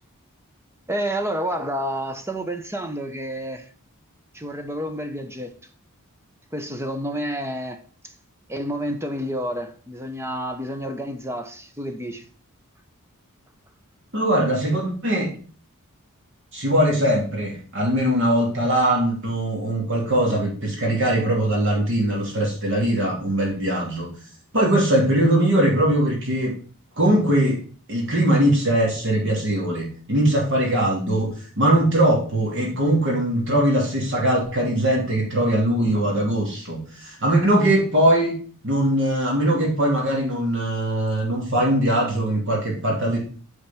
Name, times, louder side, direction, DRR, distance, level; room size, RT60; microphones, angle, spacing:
voice 1, 0.9-3.7 4.3-5.5 6.5-8.1 8.5-12.3, equal, 10° right, 0.8 m, -29 dB
voice 2, 14.1-15.3 16.5-24.1 24.5-26.5 27.0-27.6 27.9-38.3 38.6-43.2, right 1 dB, 55° right, 2.8 m, -21 dB
8.8 x 5.0 x 5.8 m
head